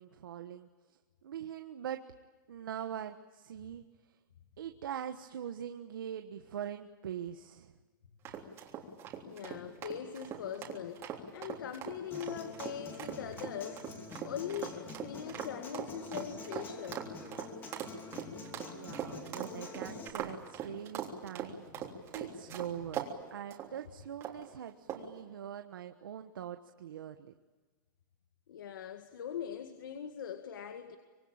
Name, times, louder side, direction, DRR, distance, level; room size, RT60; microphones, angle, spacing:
voice 1, 0.0-2.0 2.5-4.2 4.6-7.7 18.7-27.3, right 9 dB, 80° right, 7 dB, 1.3 m, -43 dB
sound 1, 8.2-23.1 23.5-23.7 24.2-24.5 24.9-25.2, right 10 dB, 25° right, 3.4 m, -41 dB
voice 2, 9.2-11.0 11.3-13.9 14.2-17.1 21.8-21.9 28.5-31.0, left 9 dB, 70° left, 7 dB, 2.0 m, -41 dB
Human voice / Acoustic guitar, 12.1-20.1, left 3 dB, 20° left, 3.0 m, -47 dB
25.0 x 23.0 x 8.8 m, 1.4 s
supercardioid pair, 165°, 11 cm